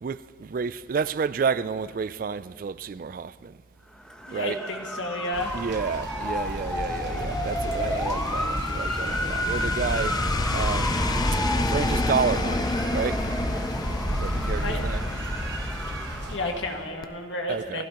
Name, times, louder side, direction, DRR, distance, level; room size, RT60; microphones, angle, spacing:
voice 1, 0.0-3.6 4.3-4.6 5.5-11.0 11.3-11.4 11.7-13.2 14.2-15.1 17.5-17.8, right 5 dB, 45° right, 0.3 m, -30 dB
Motor vehicle (road) / Siren, 4.0-16.7, equal, 5° left, 1.0 m, -33 dB
voice 2, 4.3-5.5 14.6-14.9 16.3-17.8, left 1 dB, 75° left, 2.0 m, -31 dB
sound 1, 5.3-16.4, right 1 dB, 65° right, 1.4 m, -34 dB
sound 2, 6.4-16.8 17.0-17.1, left 2 dB, 20° left, 0.4 m, -29 dB
28.5 x 15.5 x 3.0 m
head